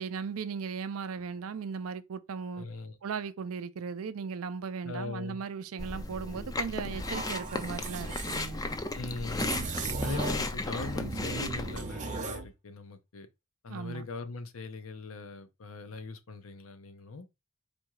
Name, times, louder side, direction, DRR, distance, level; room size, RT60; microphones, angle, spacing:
voice 1, 0.0-2.7 3.0-8.8 13.7-14.1, right 5 dB, 75° right, 0.5 m, -37 dB
voice 2, 2.6-3.0 4.8-5.4 8.9-9.7 10.0-13.3 13.6-17.3, left 3 dB, 70° left, 0.7 m, -40 dB
Chewing mastication, 5.8-11.8, left 2 dB, 20° left, 0.4 m, -35 dB
sound 1, 7.0-8.5 9.3-10.5 10.8-12.5, right 3 dB, 35° right, 0.7 m, -37 dB
4.3 x 2.4 x 4.6 m
head